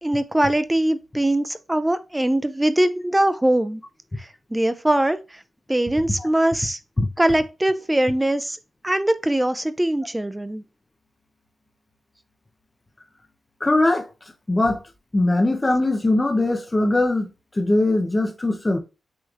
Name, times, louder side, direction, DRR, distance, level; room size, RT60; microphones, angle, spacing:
voice 1, 0.0-3.8 4.2-5.4 5.7-6.8 7.2-8.6 8.8-10.6, right 1 dB, 10° right, 0.3 m, -22 dB
voice 2, 13.6-14.1 14.5-14.8 15.1-17.3 17.6-18.8, left 2 dB, 20° left, 0.7 m, -20 dB
6.2 x 3.1 x 2.4 m
wide cardioid pair, 100°, 0 cm